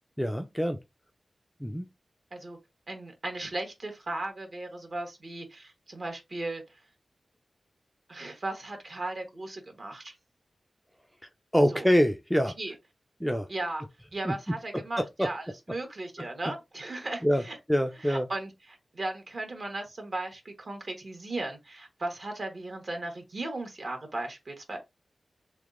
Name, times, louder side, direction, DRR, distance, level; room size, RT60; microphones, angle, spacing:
voice 1, 0.2-0.8 1.6-1.9 11.5-12.5 13.2-13.5 14.2-14.3 15.0-15.3 17.2-17.4 17.7-18.3, equal, ahead, 0.4 m, -25 dB
voice 2, 2.9-6.6 8.1-10.2 11.7-11.9 12.6-12.7 13.5-13.8 14.1-15.4 15.7-17.6 18.0-24.8, right 2 dB, 50° right, 1.2 m, -36 dB
3.4 x 3.2 x 2.5 m
wide cardioid pair, 90°, 0 cm